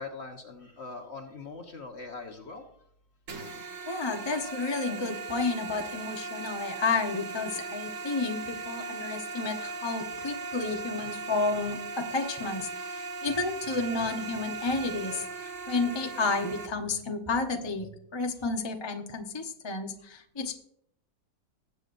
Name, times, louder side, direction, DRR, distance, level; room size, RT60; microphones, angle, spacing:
voice 1, 0.0-2.6, left 4 dB, 40° left, 4 dB, 1.2 m, -41 dB
sound 1, 3.3-16.7, right 3 dB, 50° right, 1.5 m, -38 dB
voice 2, 3.9-20.5, left 3 dB, 20° left, 3 dB, 0.8 m, -31 dB
20.0 x 8.1 x 2.6 m, 0.68 s
omnidirectional pair, 2.0 m